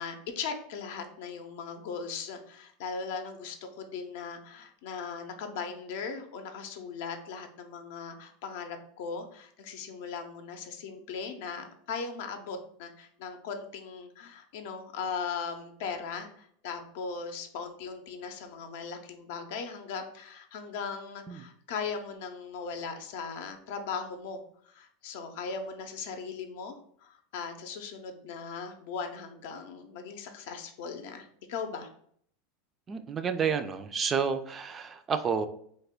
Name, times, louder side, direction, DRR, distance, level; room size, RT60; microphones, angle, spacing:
voice 1, 0.0-26.8 27.0-31.9, left 5 dB, 70° left, 6 dB, 0.5 m, -38 dB
voice 2, 32.9-35.5, right 6 dB, 30° right, 9 dB, 0.3 m, -30 dB
3.2 x 2.1 x 3.6 m, 0.64 s
supercardioid pair, 115°, 0 cm